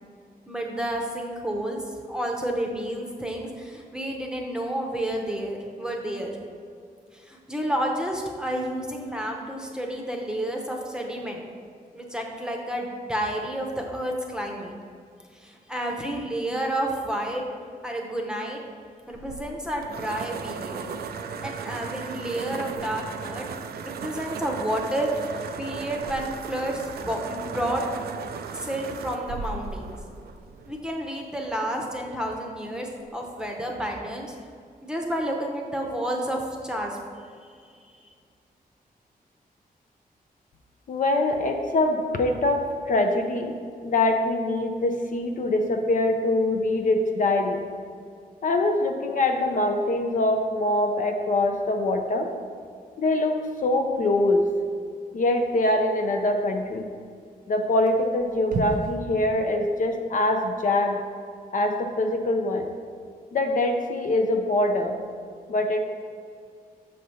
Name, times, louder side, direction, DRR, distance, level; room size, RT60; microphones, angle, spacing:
voice 1, 0.5-1.8 2.1-6.3 7.1-11.4 11.9-14.7 15.3-17.5 17.8-18.6 19.1-20.8 21.4-23.5 23.8-25.1 25.6-27.8 28.5-29.9 30.7-34.3 34.8-37.0, right 1 dB, 5° right, 0 dB, 0.8 m, -30 dB
sound 1, 19.1-31.0, right 5 dB, 85° right, 0.4 m, -36 dB
voice 2, 40.9-43.6 43.8-47.6 48.4-52.3 53.0-54.5 55.1-56.9 57.5-61.0 61.5-62.7 63.3-65.0 65.5-65.8, left 2 dB, 55° left, 4 dB, 0.5 m, -24 dB
sound 2, 51.6-59.0, right 2 dB, 65° right, 0.8 m, -39 dB
6.6 x 3.2 x 5.5 m, 2.2 s
wide cardioid pair, 130°, 16 cm